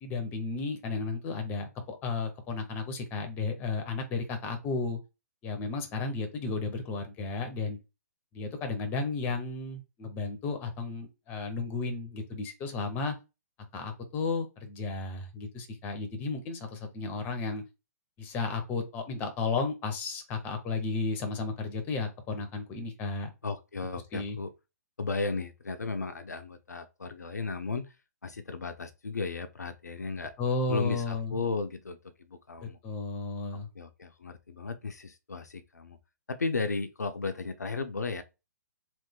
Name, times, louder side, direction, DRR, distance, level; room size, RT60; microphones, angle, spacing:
voice 1, 0.0-5.0 5.4-7.8 8.3-13.1 13.7-17.6 18.2-23.3 24.1-24.4 30.4-31.4 32.8-33.7, left 4 dB, 20° left, 0.8 m, -33 dB
voice 2, 23.4-24.5 25.0-27.9 28.2-30.3 30.7-32.8 33.7-36.0 36.3-38.2, left 4 dB, 70° left, 0.5 m, -35 dB
3.4 x 2.5 x 3.6 m
figure-of-eight pair, 125°, 9 cm